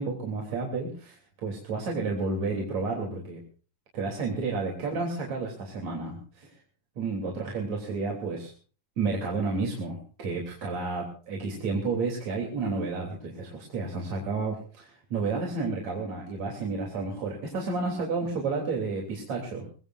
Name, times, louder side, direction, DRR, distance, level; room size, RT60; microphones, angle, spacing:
voice 1, 0.0-3.4 3.9-6.5 7.0-8.5 9.0-19.7, right 3 dB, 50° right, 0 dB, 4.4 m, -31 dB
24.5 x 21.0 x 2.6 m, 0.40 s
omnidirectional pair, 4.2 m